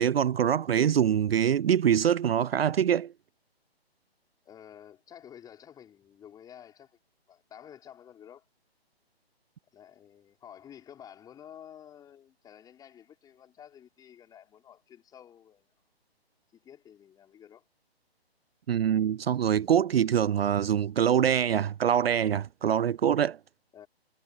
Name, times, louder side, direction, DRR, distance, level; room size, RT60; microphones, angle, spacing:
voice 1, 0.0-3.1 18.7-23.4, right 9 dB, 70° right, 0.5 m, -24 dB
voice 2, 4.4-7.0 7.3-8.4 9.7-15.7 16.5-17.6 23.7-23.9, left 9 dB, 10° left, 5.2 m, -51 dB
figure-of-eight pair, 145°, 32 cm